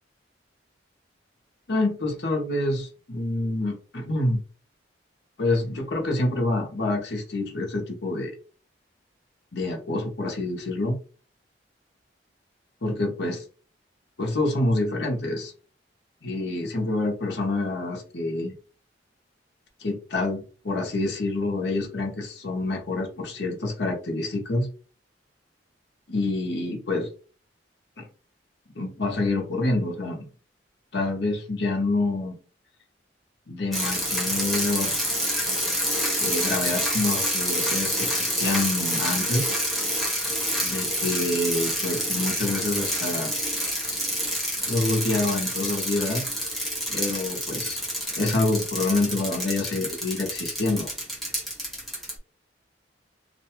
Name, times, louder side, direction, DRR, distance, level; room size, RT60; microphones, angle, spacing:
voice 1, 1.7-4.4 5.4-8.3 9.5-11.0 12.8-13.4 14.2-15.5 16.2-18.5 19.8-24.7 26.1-27.1 28.0-28.1 28.7-30.3 30.9-32.4 33.5-35.1 36.2-39.5 40.6-43.3 44.7-46.2 46.9-47.8 48.2-50.9, left 2 dB, 65° left, -1 dB, 0.8 m, -27 dB
sound 1, 33.7-52.1, equal, ahead, 0.7 m, -28 dB
2.5 x 2.2 x 2.9 m, 0.40 s
head